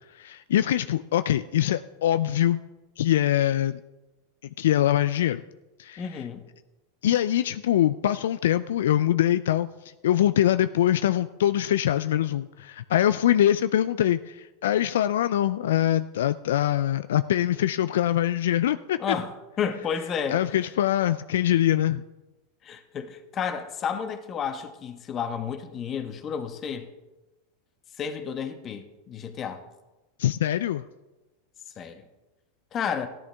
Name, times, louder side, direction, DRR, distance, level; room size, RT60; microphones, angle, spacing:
voice 1, 0.1-2.6 3.0-3.8 4.6-5.4 5.8-6.2 7.0-9.7 10.0-19.0 20.3-22.0 30.2-30.8, left 12 dB, 80° left, 0.3 m, -23 dB
voice 2, 6.0-6.5 19.0-20.4 22.6-26.9 28.0-29.6 31.8-32.0 32.7-33.1, left 7 dB, 35° left, 1.2 m, -31 dB
14.5 x 10.5 x 3.5 m
hypercardioid pair, 105°, 0 cm